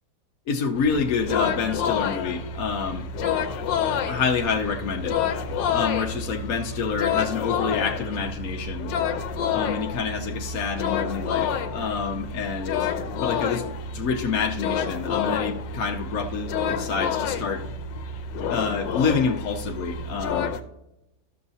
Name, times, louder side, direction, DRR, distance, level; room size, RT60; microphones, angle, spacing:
voice 1, 0.5-3.1 4.1-5.4 5.7-8.9 9.5-12.9 13.2-13.6 13.9-17.6 18.5-20.5, left 5 dB, 60° left, 1 dB, 1.1 m, -27 dB
sound 1, 0.7-20.6, left 6 dB, 85° left, 1.4 m, -29 dB
13.5 x 6.7 x 2.7 m, 0.86 s
omnidirectional pair, 1.9 m